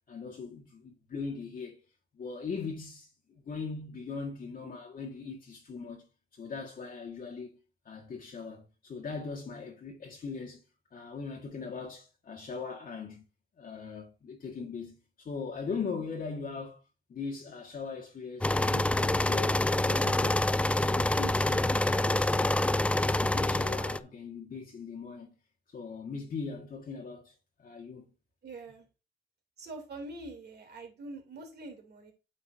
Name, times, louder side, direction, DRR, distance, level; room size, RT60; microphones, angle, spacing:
voice 1, 0.1-1.8 2.1-6.1 6.3-7.6 7.9-10.6 10.9-13.2 13.6-16.8 17.1-20.4 20.8-22.6 23.0-25.3 25.7-27.3 27.6-28.1, left 5 dB, 45° left, 1.8 m, -40 dB
sound 1, 18.4-24.0, left 1 dB, 5° left, 0.3 m, -26 dB
voice 2, 28.4-28.9 29.6-32.1, right 2 dB, 55° right, 2.8 m, -44 dB
8.9 x 5.5 x 2.6 m
cardioid pair, 90°, 20 cm